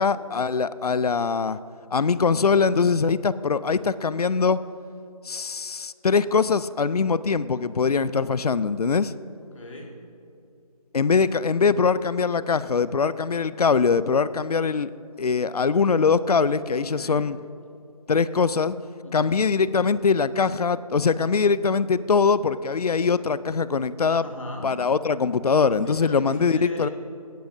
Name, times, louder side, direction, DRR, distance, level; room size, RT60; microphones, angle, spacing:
voice 1, 0.0-1.6 1.9-4.6 5.2-9.1 10.9-14.9 15.2-17.4 18.1-18.7 19.1-24.2 24.6-26.9, left 5 dB, 75° left, 17 dB, 0.5 m, -22 dB
voice 2, 9.5-9.9 16.7-17.2 19.0-19.4 24.2-24.7 25.9-26.9, left 1 dB, 55° left, 0 dB, 2.2 m, -38 dB
18.0 x 10.5 x 2.7 m, 2.6 s
figure-of-eight pair, 170°, 20 cm